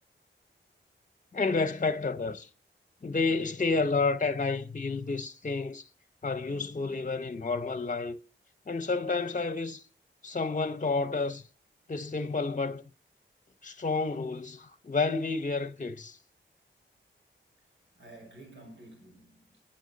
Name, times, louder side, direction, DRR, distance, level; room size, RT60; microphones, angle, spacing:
voice 1, 1.3-2.5 3.0-5.8 6.2-8.2 8.7-9.8 10.2-11.4 11.9-12.8 13.6-16.2, left 4 dB, 40° left, 0.9 m, -30 dB
voice 2, 17.6-19.6, right 1 dB, 65° right, 5.4 m, -52 dB
11.5 x 9.2 x 4.1 m
cardioid pair, 45°, 20 cm